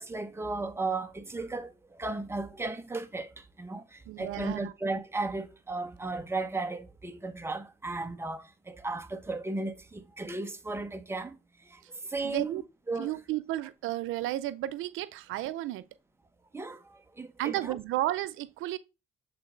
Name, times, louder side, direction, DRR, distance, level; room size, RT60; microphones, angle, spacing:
voice 1, 0.0-11.4 11.6-13.2 16.5-17.8, right 3 dB, 10° right, 0.9 m, -35 dB
voice 2, 4.1-4.7 12.2-12.6 13.0-15.8 17.4-18.8, right 15 dB, 90° right, 0.5 m, -32 dB
7.7 x 3.9 x 3.7 m
cardioid pair, 90°, 20 cm